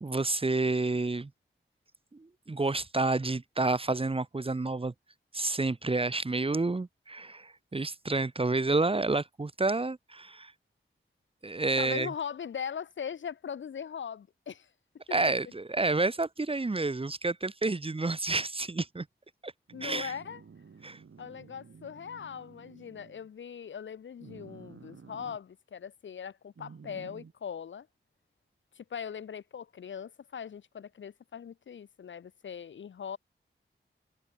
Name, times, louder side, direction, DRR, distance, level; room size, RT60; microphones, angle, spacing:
voice 1, 0.0-1.3 2.1-4.9 5.3-10.5 11.4-12.1 15.1-19.1 19.4-19.5 19.8-20.2 20.8-21.0, right 3 dB, 25° right, 0.7 m, -29 dB
voice 2, 11.8-14.7 15.1-15.3 19.7-20.4 21.2-27.9 28.8-33.2, left 7 dB, 65° left, 0.5 m, -40 dB
sound 1, 19.7-23.3 24.2-25.4 26.6-27.3, right 5 dB, 75° right, 2.1 m, -52 dB
cardioid pair, 45°, 21 cm